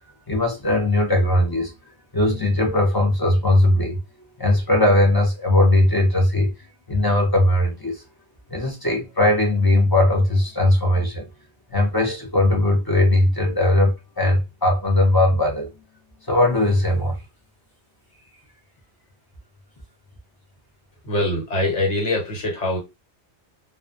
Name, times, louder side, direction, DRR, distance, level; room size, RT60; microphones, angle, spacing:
voice 1, 0.3-1.7 2.1-4.0 4.4-6.5 6.9-8.0 8.5-11.3 11.7-15.7 16.3-17.2, left 1 dB, 30° left, 0.4 m, -19 dB
voice 2, 21.0-22.8, left 1 dB, 85° left, 1.3 m, -23 dB
2.3 x 2.1 x 2.5 m
omnidirectional pair, 1.2 m